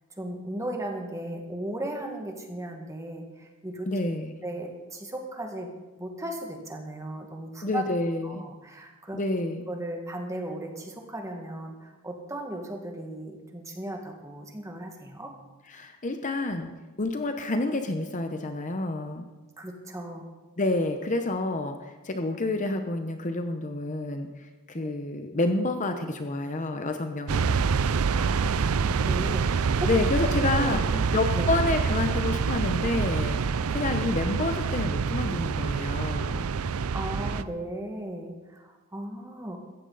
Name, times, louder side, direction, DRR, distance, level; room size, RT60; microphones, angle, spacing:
voice 1, 0.2-3.9 4.4-5.7 6.0-7.9 8.2-9.2 9.7-15.3 19.6-20.3 24.8-24.9 28.2-29.5 29.8-29.9 30.5-31.5 36.9-39.6, right 1 dB, 15° right, 2 dB, 1.9 m, -36 dB
voice 2, 3.9-4.3 7.6-8.4 9.1-9.7 15.7-16.7 17.0-19.2 20.6-27.6 29.9-30.8 31.1-33.4 33.7-36.5, left 2 dB, 35° left, 6 dB, 0.9 m, -29 dB
sound 1, 27.3-37.4, right 5 dB, 70° right, 0.5 m, -26 dB
16.0 x 14.0 x 4.1 m, 1.2 s
head